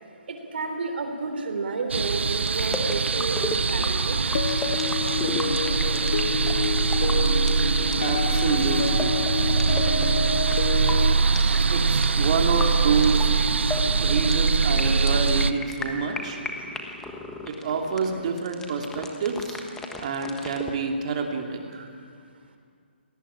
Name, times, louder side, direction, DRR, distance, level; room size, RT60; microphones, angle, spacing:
voice 1, 0.3-4.3 7.5-8.0 21.7-21.9, right 4 dB, 60° right, 5 dB, 3.6 m, -32 dB
sound 1, 1.9-15.5, right 5 dB, 80° right, 0.8 m, -23 dB
sound 2, 2.4-20.8, left 3 dB, 5° left, 1.3 m, -35 dB
sound 3, 4.3-11.1, left 7 dB, 55° left, 0.8 m, -29 dB
voice 2, 8.0-9.4 9.7-9.8 11.7-13.3 14.0-16.4 17.5-19.6 20.0-21.9, right 5 dB, 35° right, 2 dB, 2.8 m, -28 dB
24.0 x 18.5 x 8.8 m, 2.2 s
hypercardioid pair, 165°, 6 cm